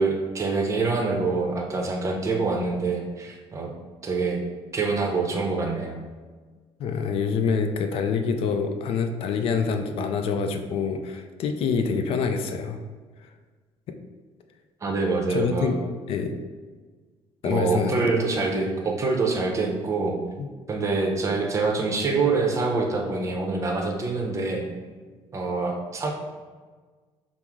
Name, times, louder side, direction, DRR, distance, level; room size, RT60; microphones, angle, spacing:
voice 1, 0.0-3.7 4.0-4.4 4.7-6.0 14.8-15.7 17.4-20.2 20.7-24.6 25.3-26.1, right 3 dB, 30° right, 1 dB, 0.6 m, -25 dB
voice 2, 6.8-12.8 13.9-14.0 15.3-15.8 16.1-16.4 17.4-18.1 20.4-20.5, left 5 dB, 60° left, 6 dB, 0.4 m, -26 dB
5.9 x 2.0 x 3.6 m, 1.4 s
cardioid pair, 140°, 11 cm